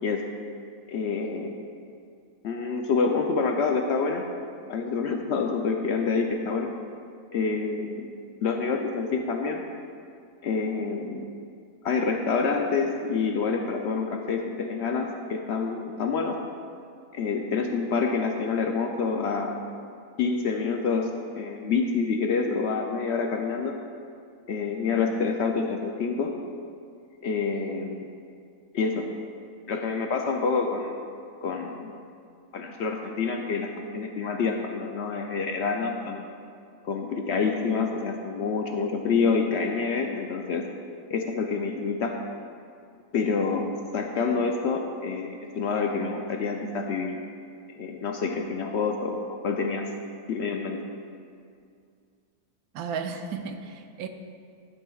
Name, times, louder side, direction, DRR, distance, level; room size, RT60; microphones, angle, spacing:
voice 1, 0.9-1.6 2.4-4.3 4.7-6.7 7.3-8.1 8.4-9.6 10.4-11.3 11.8-16.4 17.1-19.6 20.2-23.8 24.5-26.3 27.2-28.1 28.7-29.1 29.7-31.1 31.4-31.9 32.5-36.2 36.8-40.7 41.1-42.2 43.1-43.7 43.9-47.1 47.8-49.2 49.4-49.9 50.3-50.8, left 4 dB, 65° left, 3 dB, 0.7 m, -27 dB
voice 2, 52.7-54.1, right 5 dB, 90° right, 6 dB, 1.1 m, -34 dB
11.0 x 8.8 x 2.3 m, 2.3 s
omnidirectional pair, 1.5 m